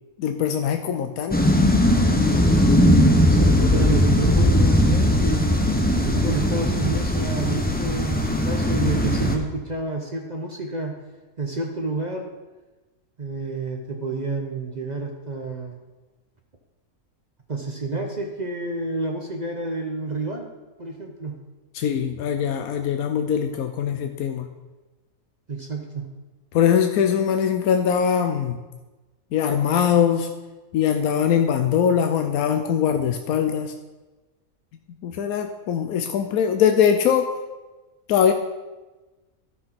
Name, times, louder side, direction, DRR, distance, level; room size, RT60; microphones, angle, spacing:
voice 1, 0.2-1.4 21.7-24.5 26.5-28.6 29.3-30.3 30.7-33.7 35.0-37.3 38.1-38.3, left 8 dB, 85° left, 6 dB, 1.1 m, -21 dB
sound 1, 1.3-9.4, left 1 dB, 10° left, 0.7 m, -19 dB
voice 2, 3.2-5.4 6.0-11.0 11.4-12.3 13.2-15.8 17.5-20.5 20.8-21.4 25.5-26.1, right 3 dB, 35° right, 2 dB, 0.8 m, -29 dB
12.5 x 4.6 x 5.9 m, 1.2 s
omnidirectional pair, 1.5 m